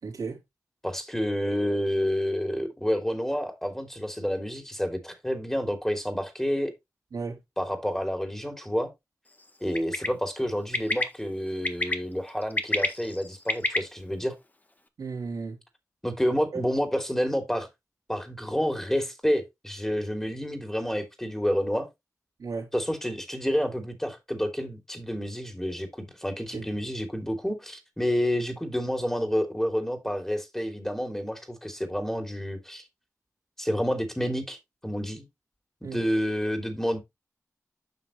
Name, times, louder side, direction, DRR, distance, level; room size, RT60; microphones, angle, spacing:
voice 1, 0.0-0.4 7.1-7.4 15.0-15.6 16.5-16.6 22.4-22.7 26.5-26.7 35.8-36.1, right 4 dB, 80° right, 3.4 m, -34 dB
voice 2, 0.8-6.7 7.6-8.9 9.6-14.3 16.0-17.7 18.1-21.9 22.7-32.8 33.6-34.6 34.8-35.2 35.9-37.0, equal, 5° left, 3.1 m, -29 dB
Bird, 9.7-10.1 10.7-11.0 11.6-11.9 12.4-13.8, left 2 dB, 30° left, 1.6 m, -26 dB
9.4 x 5.8 x 3.1 m
cardioid pair, 50°, 6 cm